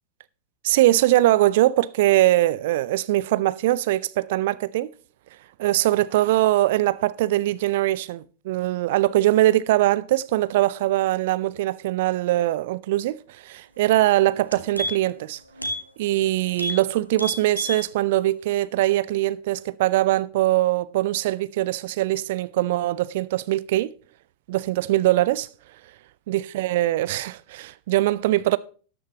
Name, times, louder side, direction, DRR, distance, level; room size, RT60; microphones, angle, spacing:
voice 1, 0.6-4.9 5.6-15.4 16.0-23.9 24.5-25.5 26.3-28.6, right 15 dB, 55° right, 0.5 m, -22 dB
sound 1, 13.9-14.0 14.3-15.2 15.6-15.8 16.1-16.2 16.5-16.8 17.1-17.8 18.2-18.3, equal, 90° left, 1.4 m, -31 dB
13.0 x 10.0 x 2.9 m
figure-of-eight pair, 90°, 0 cm